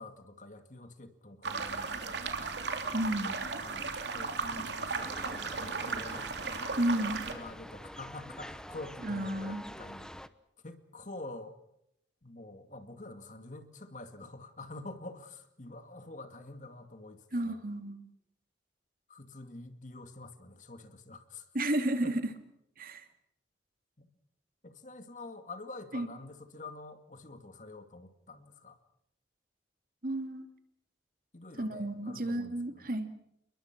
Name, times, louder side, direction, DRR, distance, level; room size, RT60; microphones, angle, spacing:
voice 1, 0.0-2.6 3.0-3.4 3.6-6.3 6.8-10.1 10.6-11.6 12.2-17.6 19.1-21.5 22.0-22.1 24.0-24.1 24.6-28.8 31.3-32.9, left 2 dB, 45° left, 8 dB, 2.2 m, -47 dB
sound 1, 1.4-7.3, right 4 dB, 70° right, 3.1 m, -36 dB
voice 2, 2.9-3.4 6.8-7.2 9.0-9.7 17.3-18.0 21.5-22.3 22.8-23.0 25.9-26.1 30.0-30.5 31.6-33.1, right 1 dB, 50° right, 7 dB, 2.5 m, -32 dB
sound 2, 5.0-10.3, equal, 5° left, 0.9 m, -47 dB
29.5 x 22.0 x 6.1 m, 0.76 s
head